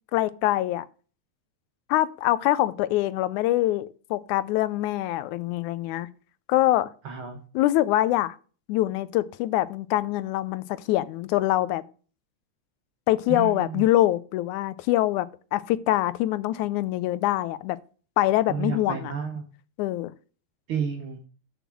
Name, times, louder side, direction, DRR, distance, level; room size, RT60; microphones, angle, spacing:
voice 1, 0.1-0.9 1.9-6.1 6.5-6.9 7.6-8.4 8.7-11.8 13.1-15.3 15.5-17.8 18.2-19.1 19.8-20.1, left 15 dB, 85° left, 2.0 m, -24 dB
voice 2, 7.0-7.4 13.3-13.8 18.5-19.5 20.7-21.2, right 6 dB, 65° right, 1.3 m, -31 dB
7.0 x 6.0 x 7.3 m
omnidirectional pair, 3.4 m